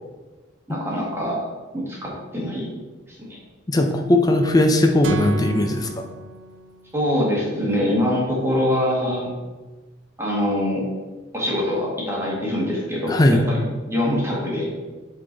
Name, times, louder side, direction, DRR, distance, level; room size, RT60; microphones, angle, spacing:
voice 1, 0.7-1.5 1.7-2.7 3.1-3.4 6.9-9.3 10.2-10.8 11.3-13.2 13.5-14.7, left 1 dB, 15° right, -5 dB, 1.7 m, -24 dB
voice 2, 3.7-6.0 13.1-13.4, left 1 dB, 20° left, 4 dB, 0.5 m, -18 dB
sound 1, 5.0-7.1, right 3 dB, 65° right, 0.5 m, -35 dB
8.1 x 3.9 x 3.9 m, 1.3 s
head